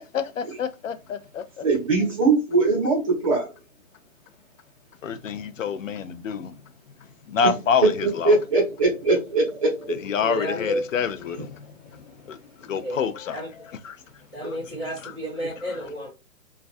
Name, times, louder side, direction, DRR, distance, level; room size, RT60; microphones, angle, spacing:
voice 1, 0.0-1.6 5.0-6.5 7.3-8.4 9.9-13.4 13.8-13.9, left 6 dB, 65° left, 0.5 m, -28 dB
voice 2, 1.6-3.5 8.0-10.1, right 3 dB, 25° right, 0.8 m, -21 dB
voice 3, 10.2-10.8 12.8-13.0 13.3-13.5 14.3-16.1, equal, 15° left, 0.8 m, -31 dB
2.3 x 2.2 x 2.5 m
hypercardioid pair, 170°, 43 cm